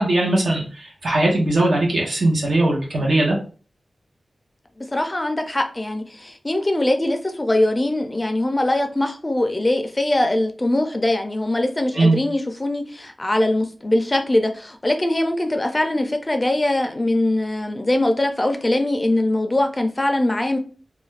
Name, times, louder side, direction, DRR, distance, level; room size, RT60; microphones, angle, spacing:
voice 1, 0.0-3.4 11.9-12.2, right 2 dB, 75° right, -2 dB, 0.8 m, -19 dB
voice 2, 4.9-20.6, left 1 dB, 25° left, 6 dB, 0.4 m, -22 dB
2.4 x 2.2 x 3.2 m, 0.38 s
wide cardioid pair, 90°, 0 cm